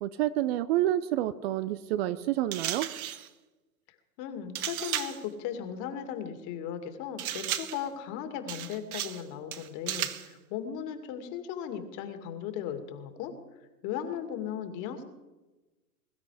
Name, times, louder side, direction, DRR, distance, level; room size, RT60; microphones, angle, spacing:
voice 1, 0.0-2.9, right 13 dB, 40° right, 14 dB, 0.7 m, -28 dB
sound 1, 2.5-3.3 4.5-5.2 7.2-7.9 8.5-9.2 9.5-10.3, right 11 dB, 60° right, 1.5 m, -34 dB
voice 2, 4.2-13.3 13.8-15.0, left 8 dB, 40° left, 7 dB, 2.5 m, -37 dB
22.5 x 13.0 x 5.0 m, 1.1 s
hypercardioid pair, 115°, 49 cm